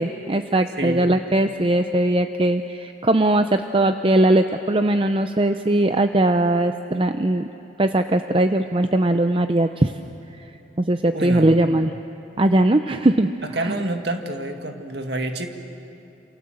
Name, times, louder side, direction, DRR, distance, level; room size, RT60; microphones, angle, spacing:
voice 1, 0.0-7.5 7.8-9.9 10.4-10.5 10.8-11.9 12.4-13.3 13.6-13.9, right 1 dB, 30° right, 8 dB, 0.6 m, -20 dB
voice 2, 0.8-1.1 11.1-11.6 13.4-15.5, right 2 dB, 60° right, 5 dB, 2.1 m, -28 dB
28.0 x 27.5 x 7.8 m, 3.0 s
head